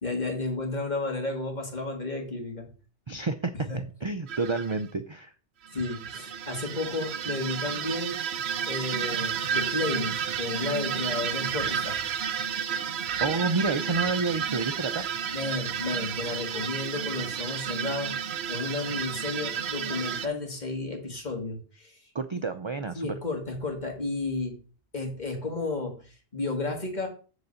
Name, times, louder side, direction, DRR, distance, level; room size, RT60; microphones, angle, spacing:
voice 1, 0.0-2.7 3.7-3.8 5.7-8.2 8.7-12.0 15.3-18.1 18.5-22.0 23.0-24.6 24.9-27.1, left 3 dB, 40° left, 2 dB, 2.1 m, -32 dB
voice 2, 3.1-5.3 13.2-15.0 22.1-23.1, right 4 dB, 40° right, 9 dB, 0.4 m, -29 dB
sound 1, 4.3-4.8 5.7-20.3, right 7 dB, 65° right, 0.8 m, -31 dB
8.1 x 4.0 x 6.9 m, 0.37 s
omnidirectional pair, 1.2 m